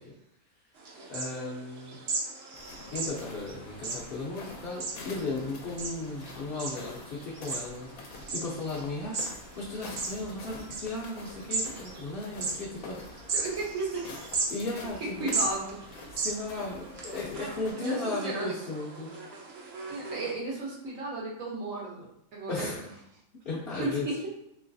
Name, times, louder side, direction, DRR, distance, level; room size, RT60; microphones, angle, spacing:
sound 1, 0.8-20.3, right 3 dB, 55° right, 0.8 m, -38 dB
voice 1, 1.1-2.0 2.9-13.3 14.5-15.3 16.1-19.1 22.5-22.8 23.4-24.1, left 2 dB, 55° left, -6 dB, 0.8 m, -36 dB
sound 2, 2.5-17.7, left 3 dB, 85° left, 1.1 m, -47 dB
voice 2, 13.3-14.2 15.0-15.7 17.7-18.5 19.9-22.9 23.8-24.2, right 2 dB, 75° right, -3 dB, 1.4 m, -34 dB
3.1 x 3.0 x 2.6 m, 0.78 s
omnidirectional pair, 1.4 m